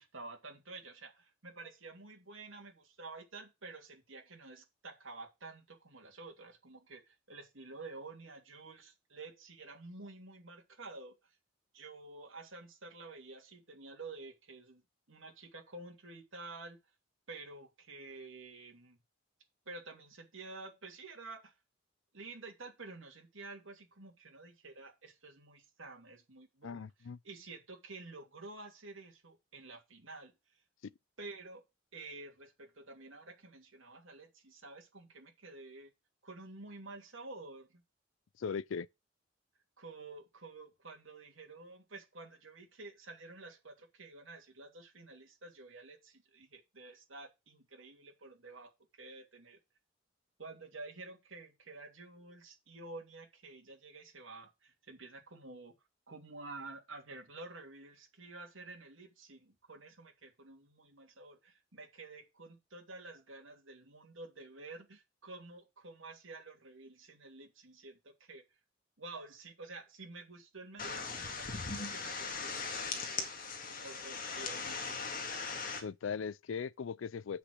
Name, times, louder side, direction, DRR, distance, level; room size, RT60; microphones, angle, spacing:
voice 1, 0.0-11.4 11.7-14.8 15.1-16.8 17.3-19.0 19.7-21.5 22.1-26.8 27.2-30.3 31.2-31.6 31.9-35.9 36.2-37.8 39.8-49.6 50.4-55.8 56.1-68.4 69.0-73.3 73.7-75.2, right 3 dB, 75° right, 2.8 m, -50 dB
voice 2, 26.6-27.2 38.4-38.9 75.8-77.4, left 6 dB, 75° left, 0.4 m, -39 dB
sound 1, 70.8-75.8, left 5 dB, 45° left, 2.0 m, -39 dB
8.1 x 6.0 x 6.2 m
head